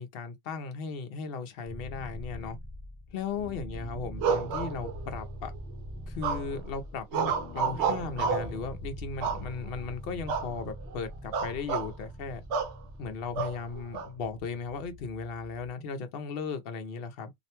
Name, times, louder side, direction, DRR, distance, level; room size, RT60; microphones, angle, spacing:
voice 1, 0.0-2.6 3.1-5.5 6.1-12.4 13.0-17.3, left 5 dB, 60° left, 0.6 m, -36 dB
sound 1, 1.7-15.7, equal, 10° left, 0.7 m, -43 dB
sound 2, 4.2-5.2 6.2-6.7 7.1-8.6 9.2-9.8 10.3-10.5 10.8-11.0 11.3-11.9 12.5-12.8 13.4-14.1, right 6 dB, 65° right, 0.8 m, -30 dB
2.5 x 2.1 x 2.8 m
omnidirectional pair, 1.5 m